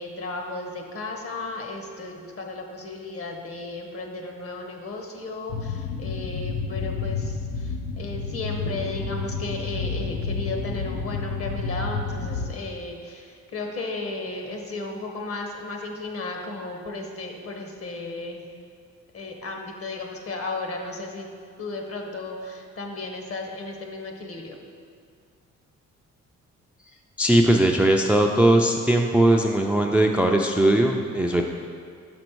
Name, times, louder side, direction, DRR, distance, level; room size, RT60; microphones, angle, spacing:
voice 1, 0.0-18.4 19.1-21.3 21.6-24.6, left 2 dB, 50° left, 3 dB, 1.0 m, -34 dB
sound 1, 5.5-12.5, left 4 dB, 85° left, 0.7 m, -30 dB
voice 2, 27.2-31.4, right 1 dB, 5° right, 2 dB, 0.3 m, -19 dB
6.0 x 5.3 x 4.5 m, 2.2 s
cardioid pair, 90°, 30 cm